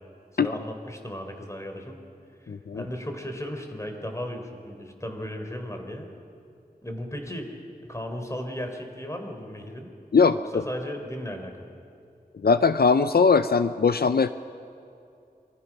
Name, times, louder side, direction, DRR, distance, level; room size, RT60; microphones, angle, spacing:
voice 1, 0.4-2.0 2.7-6.1 6.8-7.6 7.9-9.9 10.3-11.7, equal, 20° left, 4 dB, 3.7 m, -35 dB
voice 2, 2.5-2.8 10.1-10.6 12.4-14.3, left 5 dB, 75° left, 11 dB, 0.6 m, -20 dB
27.0 x 24.0 x 6.1 m, 2.6 s
wide cardioid pair, 50°, 16 cm